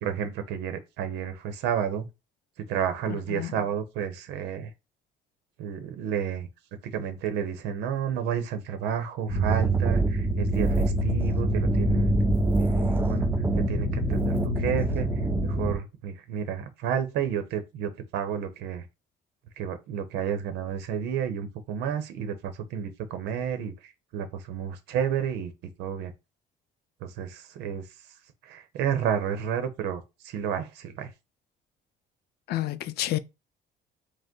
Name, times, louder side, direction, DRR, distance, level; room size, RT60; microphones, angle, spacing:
voice 1, 0.0-2.1 2.7-4.7 5.6-6.5 6.8-12.2 12.6-13.3 13.5-15.1 15.4-18.8 19.6-25.5 25.8-26.1 27.0-27.8 28.4-31.1, right 8 dB, 90° right, 0.7 m, -31 dB
voice 2, 3.1-3.6 32.5-33.2, left 14 dB, 70° left, 0.5 m, -30 dB
sound 1, 9.3-15.7, right 1 dB, 10° left, 1.8 m, -26 dB
sound 2, 9.5-15.4, right 3 dB, 15° right, 0.4 m, -29 dB
4.9 x 2.1 x 3.7 m
cardioid pair, 110°, 17 cm